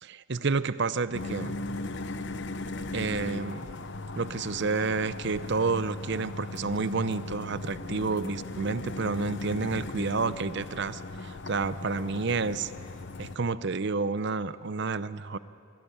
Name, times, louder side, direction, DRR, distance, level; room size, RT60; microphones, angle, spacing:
voice 1, 0.0-1.5 2.9-3.7 4.2-12.7 13.2-15.4, right 4 dB, 55° right, 15 dB, 0.7 m, -30 dB
sound 1, 1.1-13.4, left 2 dB, 55° left, 0.8 m, -38 dB
24.5 x 17.5 x 8.8 m, 2.5 s
head